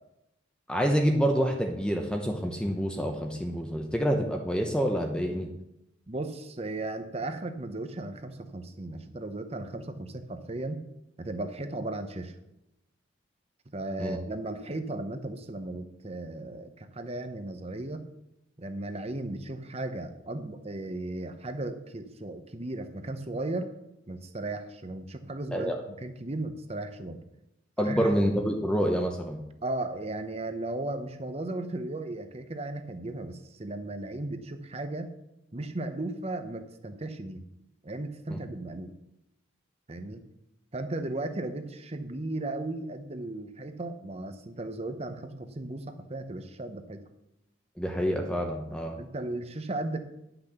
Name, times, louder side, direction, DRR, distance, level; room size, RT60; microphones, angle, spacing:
voice 1, 0.7-5.5 14.0-14.2 25.5-25.8 27.8-29.4 38.3-38.4 47.8-49.0, equal, 5° left, 2 dB, 0.7 m, -27 dB
voice 2, 6.1-10.8 11.2-12.4 13.7-18.1 18.6-23.7 24.1-27.2 27.8-28.1 29.6-35.1 35.5-37.4 37.8-38.9 39.9-40.2 40.7-47.0 48.9-50.0, right 2 dB, 30° right, 9 dB, 0.8 m, -36 dB
10.5 x 6.0 x 6.7 m, 0.88 s
head